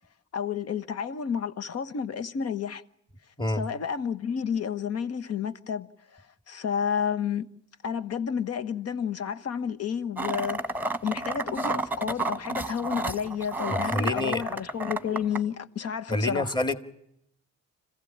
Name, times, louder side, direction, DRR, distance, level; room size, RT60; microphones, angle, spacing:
voice 1, 0.3-2.8 3.5-7.5 7.8-16.5, left 7 dB, 55° left, 1.3 m, -31 dB
sound 1, 10.2-15.4, right 2 dB, 5° right, 1.3 m, -31 dB
voice 2, 13.7-14.4 16.1-16.7, left 1 dB, 15° left, 2.0 m, -27 dB
26.0 x 16.0 x 8.7 m
cardioid pair, 90°, 30 cm